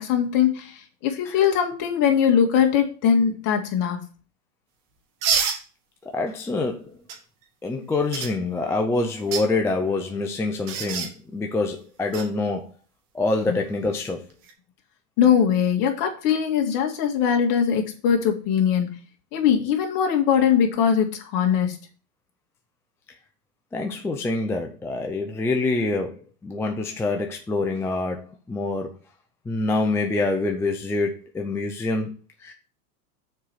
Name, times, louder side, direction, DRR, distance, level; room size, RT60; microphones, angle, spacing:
voice 1, 0.0-4.0 13.5-13.6 15.2-18.9 19.3-21.8, left 8 dB, 45° left, 2.0 m, -21 dB
sound 1, 5.2-5.6 7.1-7.2 8.1-8.3 9.1-9.4 10.7-11.1 12.1-12.2 14.3-14.5, right 6 dB, 40° right, 1.9 m, -25 dB
voice 2, 6.1-7.0 7.6-12.7 13.1-14.3 23.7-28.9 29.5-32.5, left 3 dB, 5° left, 0.4 m, -26 dB
6.6 x 4.6 x 5.6 m
hypercardioid pair, 120°, 47 cm